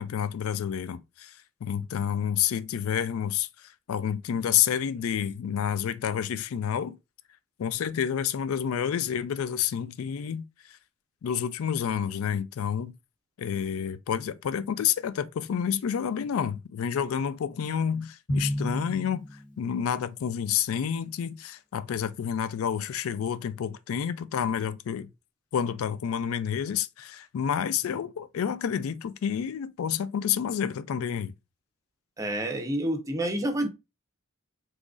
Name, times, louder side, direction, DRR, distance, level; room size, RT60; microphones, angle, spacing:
voice 1, 0.0-3.5 3.9-7.0 7.6-10.8 11.2-12.9 13.4-19.2 19.6-25.1 25.5-31.3, left 8 dB, 70° left, 0.3 m, -29 dB
Drum, 18.3-20.0, equal, 35° left, 0.9 m, -32 dB
voice 2, 32.2-33.7, right 1 dB, 15° right, 0.5 m, -28 dB
3.8 x 3.0 x 2.4 m
head